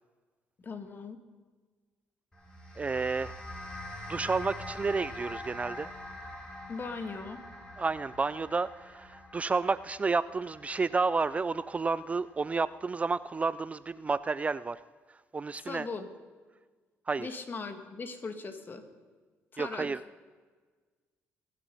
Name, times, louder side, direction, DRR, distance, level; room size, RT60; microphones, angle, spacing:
voice 1, 0.6-1.2 6.7-7.4 15.6-16.1 17.2-18.8 19.5-19.9, left 4 dB, 40° left, 8 dB, 1.7 m, -39 dB
sound 1, 2.3-12.9, left 1 dB, 15° left, 3.3 m, -45 dB
voice 2, 2.8-3.4 4.1-5.9 7.8-14.8 15.3-15.9 17.1-17.3 19.6-20.0, right 4 dB, 25° right, 17 dB, 0.3 m, -31 dB
21.5 x 7.4 x 5.4 m, 1.4 s
cardioid pair, 85°, 5 cm